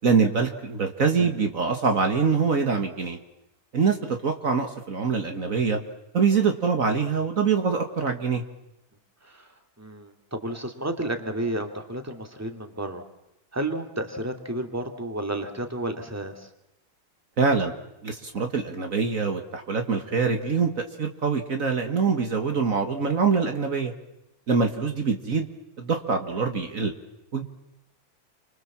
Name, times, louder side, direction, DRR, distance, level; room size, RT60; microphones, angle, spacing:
voice 1, 0.0-3.2 3.7-5.8 6.1-8.4 17.4-17.7 18.0-23.9 24.5-25.5 25.8-26.9 27.3-27.4, right 5 dB, 60° right, 5 dB, 2.1 m, -24 dB
voice 2, 9.2-9.5 9.8-13.0 13.5-16.5, right 1 dB, 10° right, 5 dB, 2.5 m, -32 dB
29.5 x 25.0 x 7.4 m, 0.88 s
omnidirectional pair, 1.6 m